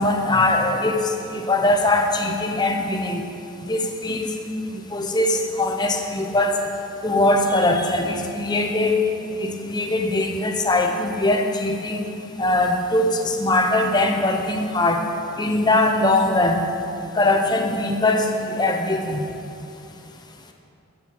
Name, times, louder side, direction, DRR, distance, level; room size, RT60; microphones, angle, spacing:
voice 1, 0.0-3.2 3.6-4.3 4.7-6.7 7.0-9.0 9.3-12.1 12.4-15.0 15.4-16.6 17.1-19.3, left 2 dB, 20° left, 3 dB, 0.9 m, -21 dB
14.0 x 9.0 x 4.7 m, 2.6 s
head